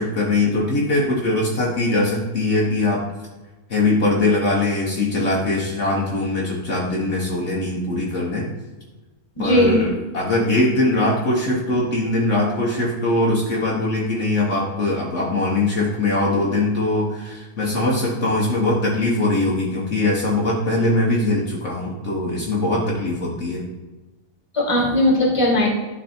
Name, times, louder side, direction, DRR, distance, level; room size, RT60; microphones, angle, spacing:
voice 1, 0.0-3.0 3.7-8.5 9.4-23.6, left 2 dB, 55° left, -4 dB, 1.6 m, -21 dB
voice 2, 9.4-9.9 24.5-25.7, left 1 dB, 20° left, -2 dB, 2.0 m, -18 dB
11.0 x 4.1 x 4.4 m, 1.2 s
omnidirectional pair, 1.5 m